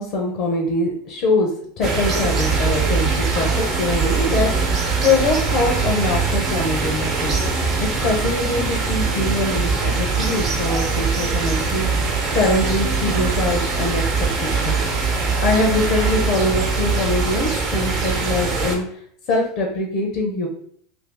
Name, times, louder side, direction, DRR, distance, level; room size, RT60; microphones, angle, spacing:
voice 1, 0.0-7.4 7.8-14.0 14.4-14.8 15.4-18.8 19.3-20.5, left 2 dB, 55° left, 1 dB, 0.6 m, -23 dB
sound 1, 1.8-18.8, right 4 dB, 40° right, 0.9 m, -22 dB
2.7 x 2.6 x 3.4 m, 0.64 s
figure-of-eight pair, 80°, 0 cm